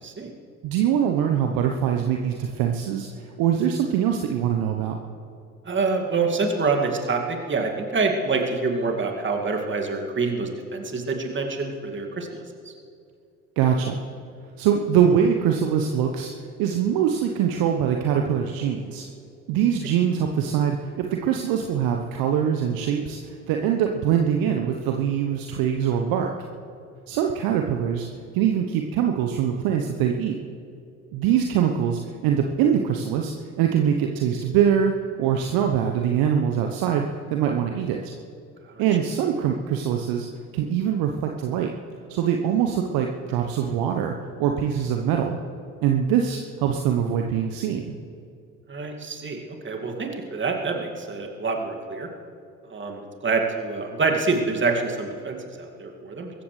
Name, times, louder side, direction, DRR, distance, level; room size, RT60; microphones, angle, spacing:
voice 1, 0.6-5.0 13.6-14.0 14.6-19.1 19.5-26.3 27.1-28.1 28.3-30.4 31.1-34.9 35.2-38.1 38.8-40.3 40.5-41.7 42.1-44.1 44.4-45.4 45.8-47.9, right 8 dB, 50° right, 3 dB, 1.1 m, -23 dB
voice 2, 5.7-12.7 38.7-38.8 48.7-52.1 52.7-56.3, right 4 dB, 25° right, 2 dB, 2.3 m, -26 dB
23.0 x 14.5 x 3.3 m, 2.5 s
figure-of-eight pair, 60°, 44 cm